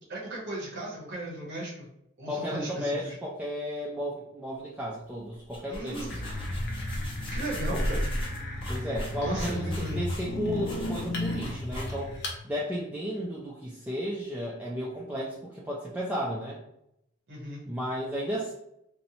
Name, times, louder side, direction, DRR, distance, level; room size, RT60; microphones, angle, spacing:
voice 1, 0.1-1.8 2.2-3.2 5.7-6.2 7.3-8.1 9.2-10.0 17.3-17.6, right 1 dB, 60° right, -5 dB, 0.8 m, -36 dB
voice 2, 2.3-6.2 8.7-12.2 12.4-16.6 17.7-18.5, equal, 10° right, -6 dB, 0.3 m, -33 dB
sound 1, 5.3-12.3, equal, 25° left, 0.8 m, -36 dB
sound 2, 6.1-12.4, left 1 dB, 55° left, 0.5 m, -34 dB
2.7 x 2.0 x 2.7 m, 0.80 s
head